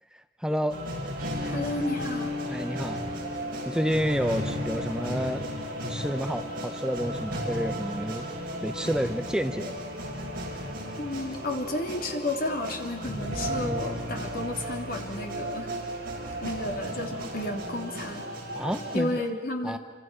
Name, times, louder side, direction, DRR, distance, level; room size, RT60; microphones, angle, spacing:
voice 1, 0.1-0.8 2.4-3.0 3.7-5.5 5.9-8.3 8.6-9.8 18.5-19.4 19.6-19.8, equal, 5° right, 8 dB, 0.6 m, -30 dB
sound 1, 0.7-19.0, equal, 50° right, 7.1 m, -34 dB
voice 2, 1.4-2.3 11.0-15.7 16.4-18.2 18.9-19.8, left 1 dB, 50° left, 2 dB, 3.2 m, -32 dB
28.0 x 26.0 x 6.3 m, 1.5 s
head